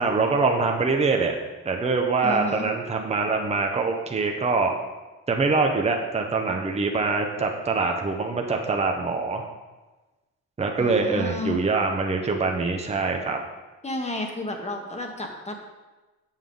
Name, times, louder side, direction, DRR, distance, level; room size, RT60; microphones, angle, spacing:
voice 1, 0.0-1.4 1.6-4.8 5.3-9.4 10.6-13.4, right 4 dB, 20° right, 2 dB, 0.8 m, -24 dB
voice 2, 2.2-2.7 10.8-11.7 13.8-15.5, left 1 dB, 20° left, 3 dB, 1.2 m, -31 dB
7.3 x 6.3 x 3.8 m, 1.2 s
cardioid pair, 90°, 30 cm